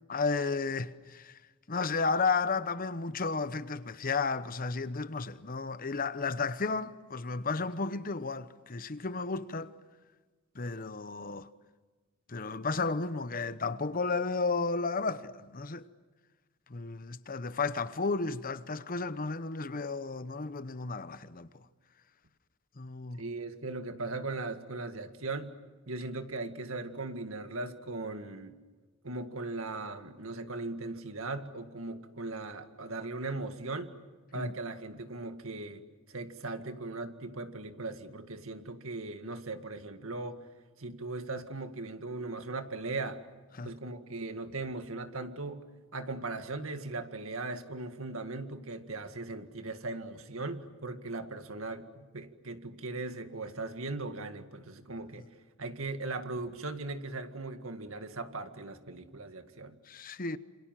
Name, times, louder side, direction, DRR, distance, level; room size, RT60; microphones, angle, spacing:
voice 1, 0.1-1.4 1.7-9.7 10.5-11.5 12.3-15.8 16.7-21.7 22.8-23.2 34.3-34.5 43.6-43.7 59.9-60.4, left 4 dB, 40° left, 0.9 m, -33 dB
voice 2, 23.2-25.5 25.9-28.5 29.0-34.0 34.3-40.4 40.8-43.2 43.6-45.6 45.9-55.3 55.6-59.8, right 3 dB, 75° right, 2.0 m, -38 dB
28.0 x 27.0 x 7.5 m
head